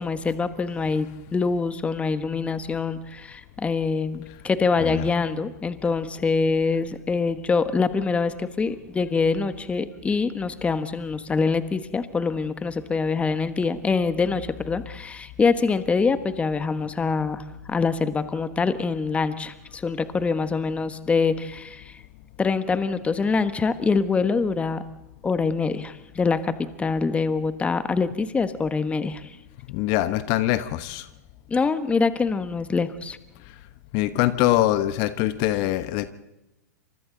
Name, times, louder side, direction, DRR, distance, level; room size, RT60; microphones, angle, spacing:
voice 1, 0.0-22.0 22.4-24.8 25.2-29.2 31.5-33.2, left 4 dB, 15° left, 12 dB, 1.3 m, -25 dB
voice 2, 29.7-31.1 33.9-36.1, left 15 dB, 45° left, 13 dB, 1.1 m, -23 dB
28.5 x 26.5 x 3.9 m, 0.93 s
figure-of-eight pair, 105°, 9 cm